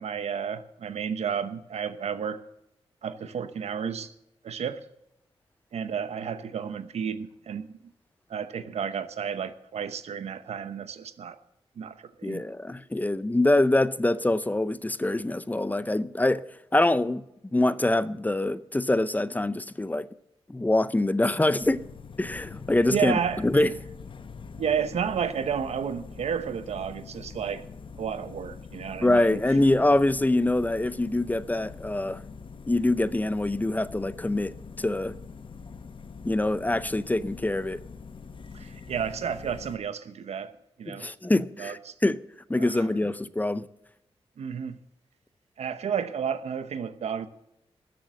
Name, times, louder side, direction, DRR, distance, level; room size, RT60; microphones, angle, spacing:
voice 1, 0.0-2.4 3.0-4.1 4.4-4.8 5.7-7.8 8.3-11.4 11.8-12.4 22.9-23.7 24.6-27.6 28.0-29.4 38.5-40.5 40.8-41.1 41.6-41.9 42.6-42.8 44.4-44.8 45.6-47.3, right 7 dB, 80° right, 0.9 m, -32 dB
voice 2, 12.2-16.4 16.7-17.2 17.5-20.1 20.5-21.8 22.2-23.7 29.0-32.2 32.7-35.1 36.2-37.8 40.9-42.2 42.5-43.7, left 2 dB, 15° left, 0.5 m, -24 dB
sound 1, 21.6-39.8, left 5 dB, 50° left, 0.8 m, -44 dB
13.0 x 7.8 x 7.5 m
cardioid pair, 85°, 11 cm